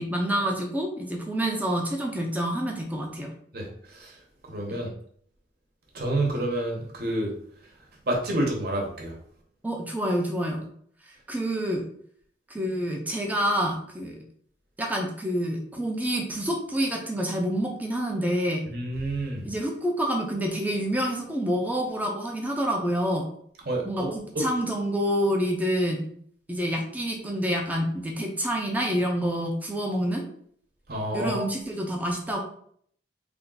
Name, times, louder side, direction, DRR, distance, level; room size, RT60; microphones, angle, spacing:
voice 1, 0.0-3.3 4.7-4.8 9.6-10.6 11.3-11.8 12.5-14.2 14.8-18.6 19.4-23.2 23.8-26.0 26.5-30.2 31.1-32.4, equal, 10° right, 0 dB, 0.6 m, -27 dB
voice 2, 3.5-4.1 4.5-4.9 5.9-7.3 8.1-9.1 18.7-19.4 23.7-24.4 30.9-31.4, right 1 dB, 60° right, -1 dB, 1.1 m, -29 dB
3.4 x 2.5 x 3.9 m, 0.62 s
head